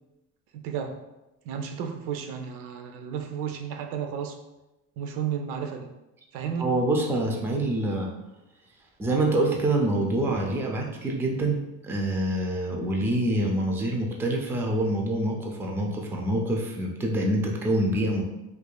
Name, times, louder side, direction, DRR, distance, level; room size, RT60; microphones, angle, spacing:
voice 1, 0.5-1.0 1.5-4.4 5.0-5.9 6.3-6.7, right 7 dB, 80° right, 5 dB, 0.6 m, -32 dB
voice 2, 6.6-8.1 9.0-11.6 11.8-18.2, right 1 dB, 5° right, 0 dB, 0.4 m, -26 dB
4.6 x 2.5 x 2.2 m, 0.98 s
cardioid pair, 125°, 34 cm